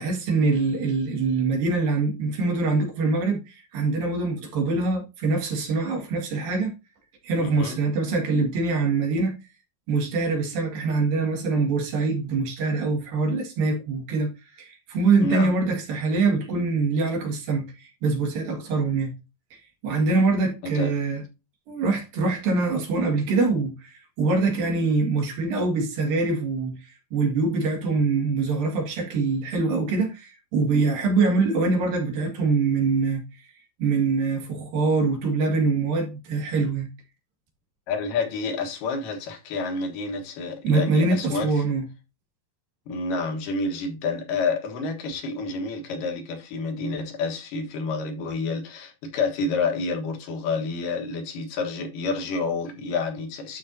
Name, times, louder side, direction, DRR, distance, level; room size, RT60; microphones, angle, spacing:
voice 1, 0.0-6.7 7.2-9.4 9.9-14.3 14.6-19.1 19.5-21.2 21.7-33.2 33.8-36.9 40.6-41.8, right 3 dB, 70° right, 3.7 m, -24 dB
voice 2, 7.4-7.8 15.2-15.5 20.6-20.9 37.9-41.5 42.9-53.6, left 4 dB, 70° left, 2.9 m, -29 dB
12.5 x 4.7 x 2.7 m
omnidirectional pair, 4.3 m